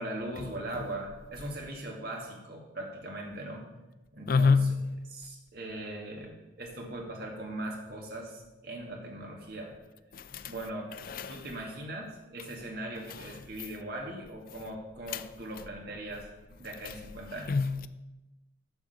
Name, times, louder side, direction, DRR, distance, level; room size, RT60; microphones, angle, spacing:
voice 1, 0.0-3.7 4.1-4.6 5.1-9.7 10.1-16.3 16.6-17.6, right 1 dB, 55° right, 1.9 m, -40 dB
voice 2, 4.3-4.9 10.1-10.5 11.1-11.5 13.1-13.3 15.1-15.2 16.8-16.9 17.5-17.9, left 4 dB, 50° left, 0.4 m, -27 dB
7.1 x 6.3 x 6.6 m
head